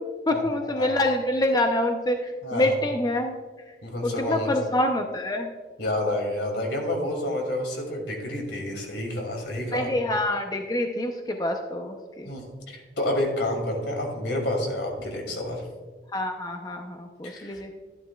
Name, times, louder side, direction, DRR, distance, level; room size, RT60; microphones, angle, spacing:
voice 1, 0.3-3.3 4.0-5.5 9.7-12.3 16.1-17.7, left 1 dB, 20° left, 4 dB, 0.5 m, -26 dB
voice 2, 2.4-2.8 3.8-4.5 5.8-9.9 12.2-15.7 17.2-17.6, left 1 dB, 80° left, 1 dB, 2.4 m, -29 dB
12.0 x 11.0 x 2.3 m, 1.4 s
head